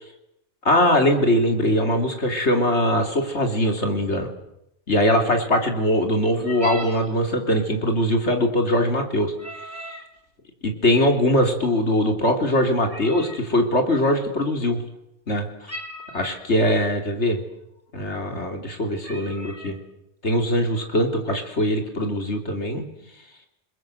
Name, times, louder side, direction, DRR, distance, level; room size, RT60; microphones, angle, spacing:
voice 1, 0.7-4.3 4.9-9.3 9.6-10.0 10.6-14.8 15.3-15.7 16.1-17.4 17.9-19.8 20.2-22.8, left 1 dB, 85° left, 5 dB, 3.5 m, -21 dB
sound 1, 6.3-7.1 9.3-10.1 12.9-13.5 15.7-16.5 17.3-17.4 17.8-18.0 18.6-18.7 19.0-19.8, equal, 10° right, 3.7 m, -38 dB
28.5 x 21.5 x 7.9 m, 0.82 s
omnidirectional pair, 1.1 m